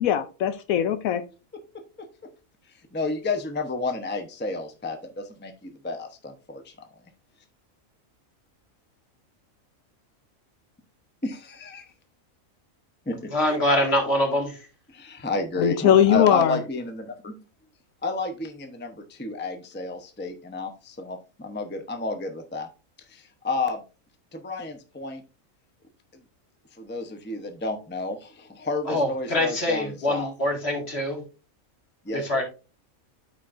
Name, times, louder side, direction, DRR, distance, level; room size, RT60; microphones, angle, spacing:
voice 1, 0.0-1.2 15.6-16.6, left 9 dB, 85° left, 10 dB, 1.1 m, -20 dB
voice 2, 2.9-6.7 11.2-11.8 13.1-13.2 14.9-17.3 18.0-22.7 23.1-23.8 24.3-25.2 26.8-30.3 32.0-32.4, left 3 dB, 10° left, 6 dB, 0.7 m, -31 dB
voice 3, 13.3-14.5 28.9-31.2 32.1-32.4, left 1 dB, 50° left, 1 dB, 2.3 m, -24 dB
13.0 x 4.5 x 2.6 m, 0.33 s
omnidirectional pair, 1.4 m